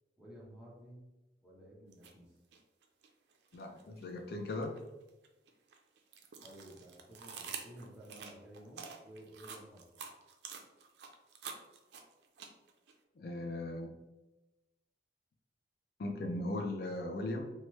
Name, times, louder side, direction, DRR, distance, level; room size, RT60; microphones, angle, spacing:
voice 1, 0.2-1.0 1.4-2.3 6.4-9.9, right 1 dB, 5° right, -7 dB, 0.8 m, -53 dB
sound 1, 1.9-2.1 2.5-4.1 4.5-12.9, right 6 dB, 70° right, 0.4 m, -48 dB
voice 2, 3.5-4.7 13.2-13.9 16.0-17.5, left 1 dB, 60° left, 3 dB, 0.4 m, -38 dB
3.1 x 2.2 x 3.0 m, 1.0 s
head